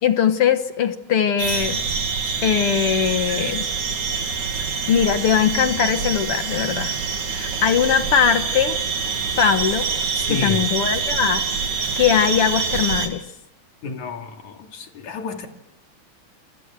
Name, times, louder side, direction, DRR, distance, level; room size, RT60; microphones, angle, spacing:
voice 1, 0.0-1.8 2.4-3.7 4.9-6.9 7.3-8.8 9.4-9.9 10.3-11.4 12.0-13.2, left 8 dB, 55° left, 2.1 m, -20 dB
sound 1, 1.4-13.1, right 5 dB, 75° right, 4.4 m, -25 dB
voice 2, 10.1-10.7 13.8-15.5, left 4 dB, 75° left, 4.2 m, -31 dB
28.5 x 25.0 x 7.5 m
omnidirectional pair, 3.4 m